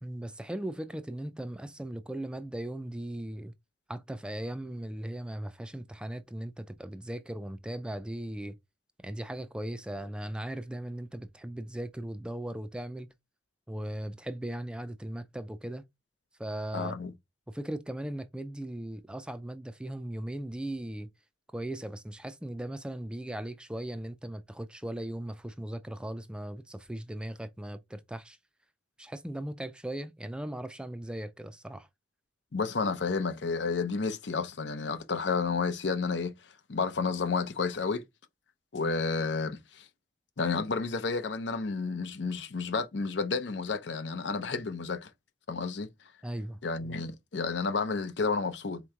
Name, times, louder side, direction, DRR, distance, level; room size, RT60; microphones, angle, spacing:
voice 1, 0.0-3.5 3.9-8.6 9.0-13.1 13.7-15.8 16.4-17.0 17.5-21.1 21.5-28.4 29.0-31.9 46.2-46.6, right 1 dB, 5° right, 0.4 m, -38 dB
voice 2, 16.7-17.1 32.5-36.3 36.7-38.0 38.7-39.9 40.4-45.1 45.5-45.9 46.6-48.8, left 4 dB, 70° left, 0.7 m, -31 dB
4.3 x 3.0 x 3.6 m
head